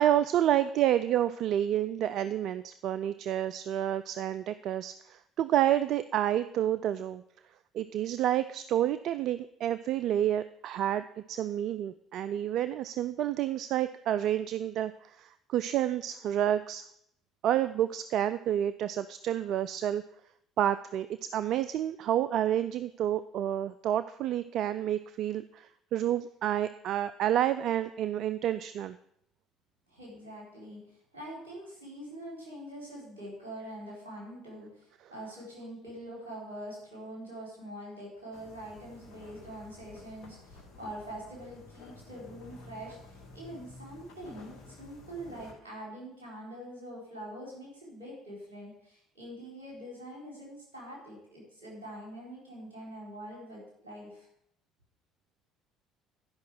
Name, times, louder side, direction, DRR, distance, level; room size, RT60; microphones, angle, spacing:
voice 1, 0.0-7.2 7.7-16.8 17.4-20.0 20.6-21.1 21.3-29.0, right 11 dB, 60° right, 12 dB, 0.3 m, -29 dB
voice 2, 29.9-54.3, right 1 dB, 85° right, -5 dB, 4.0 m, -44 dB
sound 1, 38.3-45.5, left 2 dB, 55° left, 1.9 m, -51 dB
11.5 x 5.6 x 6.1 m, 0.73 s
hypercardioid pair, 60°, 0 cm